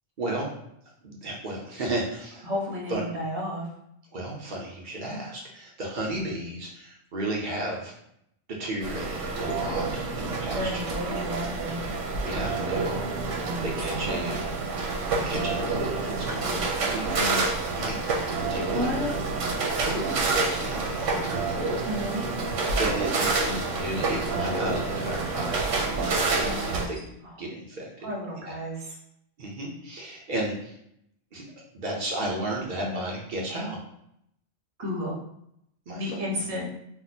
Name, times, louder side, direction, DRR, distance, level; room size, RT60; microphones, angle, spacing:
voice 1, 0.2-0.5 1.0-2.4 2.9-3.0 4.1-7.9 8.6-11.2 12.2-14.5 15.3-18.0 18.4-21.4 21.7-21.9 22.8-27.0 27.4-27.9 28.4-28.6 29.4-30.8 31.3-31.4 31.7-33.8 35.9-36.3, right 1 dB, 45° right, -2 dB, 0.8 m, -34 dB
voice 2, 2.4-3.7 10.5-11.8 13.4-14.3 18.7-19.1 21.8-22.2 26.4-26.9 28.0-29.0 32.9-33.0 34.8-35.2 35.9-36.6, equal, 65° right, -2 dB, 1.1 m, -32 dB
sound 1, 8.8-26.9, right 3 dB, 85° right, 1.0 m, -28 dB
2.8 x 2.1 x 4.1 m, 0.76 s
omnidirectional pair, 1.3 m